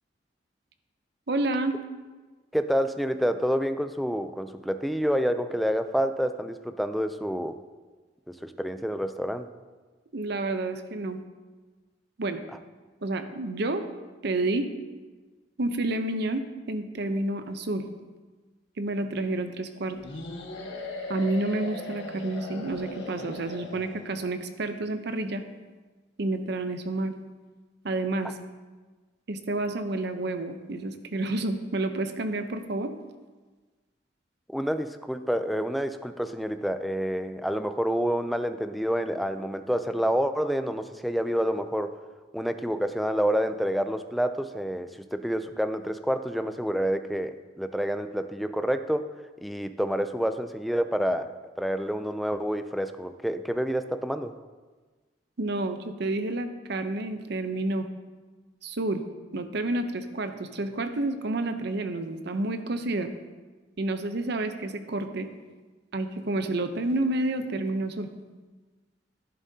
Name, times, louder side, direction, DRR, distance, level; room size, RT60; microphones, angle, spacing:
voice 1, 1.3-1.8 10.1-11.2 12.2-12.4 13.0-13.8 14.2-14.7 15.6-17.9 18.8-20.0 21.1-25.4 26.2-27.2 27.8-28.4 29.3-32.9 55.4-57.9 58.6-59.0 59.3-63.1 63.8-65.3 65.9-68.1, right 2 dB, 65° right, 8 dB, 0.7 m, -29 dB
voice 2, 2.5-7.5 8.4-9.5 34.5-42.0 42.3-49.1 49.4-51.3 51.6-54.3, equal, ahead, 9 dB, 0.4 m, -28 dB
sound 1, 20.0-24.2, left 2 dB, 80° left, 1.5 m, -38 dB
11.0 x 11.0 x 2.8 m, 1.3 s
head